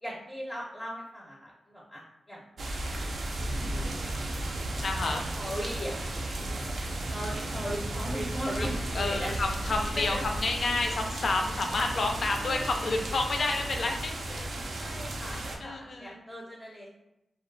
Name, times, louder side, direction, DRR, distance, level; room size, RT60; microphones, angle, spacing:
voice 1, 0.0-2.4 3.4-4.5 5.0-6.0 6.4-6.6 7.1-9.3 10.0-10.2 12.4-12.8 14.8-16.9, equal, 10° left, -4 dB, 0.5 m, -38 dB
sound 1, 2.6-15.6, right 1 dB, 70° right, 0.3 m, -34 dB
voice 2, 4.8-5.2 8.6-14.5 15.3-16.2, left 3 dB, 65° left, 3 dB, 0.3 m, -30 dB
2.3 x 2.1 x 2.5 m, 0.87 s
cardioid pair, 65°, 0 cm